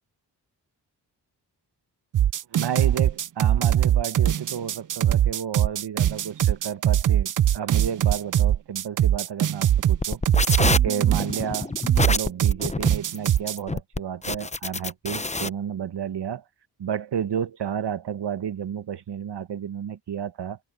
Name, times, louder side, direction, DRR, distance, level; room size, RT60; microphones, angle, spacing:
sound 1, 2.1-13.6, right 11 dB, 50° right, 0.5 m, -21 dB
voice 1, 2.5-10.2 10.8-11.7 12.1-16.4 16.8-20.6, right 8 dB, 75° right, 1.4 m, -31 dB
sound 2, 9.9-15.5, left 3 dB, 15° left, 0.8 m, -27 dB
cardioid pair, 50°, 41 cm